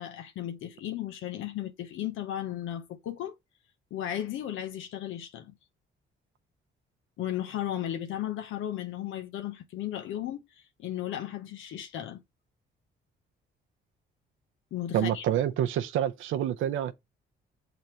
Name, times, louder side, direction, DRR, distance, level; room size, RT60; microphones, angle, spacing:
voice 1, 0.0-3.3 3.9-5.5 7.2-10.4 10.8-12.2 14.7-15.2, left 11 dB, 85° left, 1.0 m, -35 dB
voice 2, 14.9-16.9, right 10 dB, 85° right, 0.7 m, -27 dB
7.0 x 3.9 x 4.5 m
cardioid pair, 90°, 20 cm